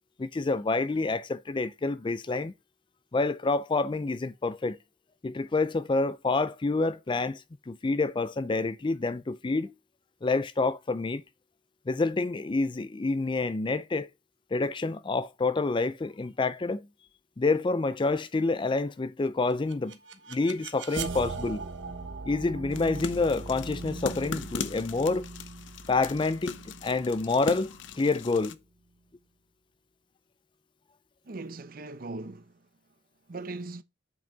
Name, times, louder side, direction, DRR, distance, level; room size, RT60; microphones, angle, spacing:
voice 1, 0.2-2.5 3.1-4.8 5.2-9.7 10.2-11.2 11.9-14.1 14.5-16.8 17.4-20.0 20.3-21.6 22.3-25.3 25.9-26.5 26.8-28.6, left 3 dB, 25° left, 0.4 m, -28 dB
sound 1, 19.5-28.4, right 3 dB, 85° right, 1.2 m, -40 dB
sound 2, 22.7-28.5, left 5 dB, 80° left, 0.7 m, -40 dB
voice 2, 31.2-32.7 33.3-33.8, right 2 dB, 50° right, 0.7 m, -39 dB
7.7 x 5.6 x 3.9 m
head